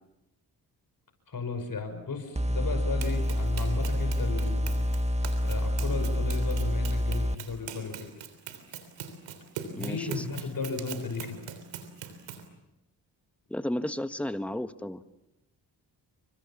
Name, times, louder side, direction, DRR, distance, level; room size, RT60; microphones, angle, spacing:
voice 1, 1.3-4.9 5.4-8.1 9.8-11.4, left 4 dB, 50° left, 6 dB, 5.7 m, -35 dB
sound 1, 2.3-7.3, equal, 15° right, 1.6 m, -27 dB
Run, 3.0-12.5, right 8 dB, 90° right, 3.4 m, -42 dB
voice 2, 9.7-10.2 13.5-15.0, left 1 dB, 5° left, 10 dB, 1.5 m, -33 dB
29.0 x 25.0 x 7.2 m, 0.93 s
supercardioid pair, 55°, 43 cm